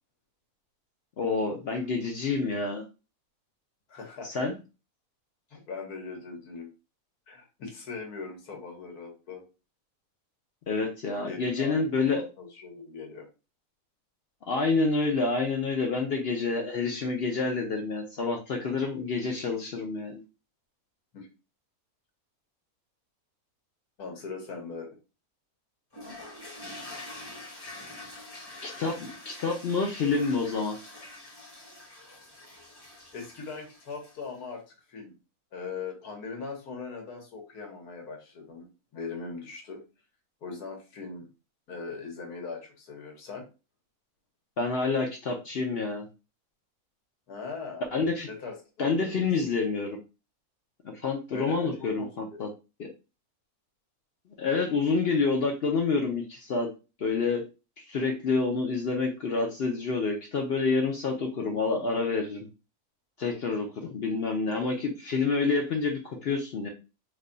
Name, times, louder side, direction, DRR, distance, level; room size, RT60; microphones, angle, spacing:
voice 1, 1.2-2.8 4.2-4.5 10.7-12.2 14.5-20.2 28.6-30.8 44.6-46.1 47.9-48.3 48.8-50.0 50.8-52.5 54.4-56.7 57.0-57.4 57.9-62.5 63.2-66.7, left 4 dB, 60° left, 2 dB, 0.6 m, -28 dB
voice 2, 3.9-4.4 5.5-6.7 7.3-9.4 11.3-11.9 12.1-13.3 21.1-21.3 24.0-24.9 33.1-35.1 35.5-39.8 40.4-41.3 41.7-43.5 47.3-49.1 51.3-52.4, left 4 dB, 90° left, 2 dB, 1.6 m, -40 dB
toilet flush, 25.9-34.4, left 2 dB, 20° left, 0.7 m, -45 dB
3.3 x 2.2 x 3.8 m, 0.30 s
omnidirectional pair, 1.6 m